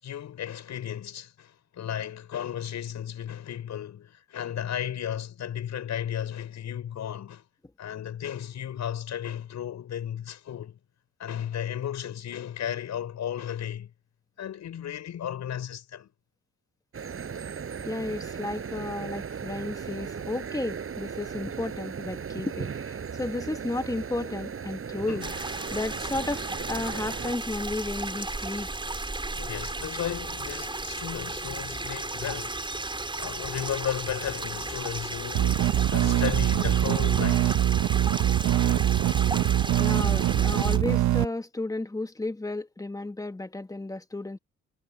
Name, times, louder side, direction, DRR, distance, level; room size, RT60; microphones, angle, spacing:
voice 1, 0.0-7.4 7.8-10.8 11.2-13.9 14.4-16.1 19.3-19.4 24.9-25.3 29.3-32.6 33.2-37.6, left 10 dB, 65° left, 6.0 m, -34 dB
sound 1, 16.9-27.3, right 6 dB, 45° right, 7.7 m, -37 dB
voice 2, 17.8-25.3 25.7-28.7 39.8-44.4, left 2 dB, 10° left, 1.7 m, -33 dB
sound 2, 25.2-40.8, right 2 dB, 15° right, 4.7 m, -34 dB
sound 3, 35.4-41.3, right 13 dB, 70° right, 1.0 m, -23 dB
cardioid pair, 90°, 30 cm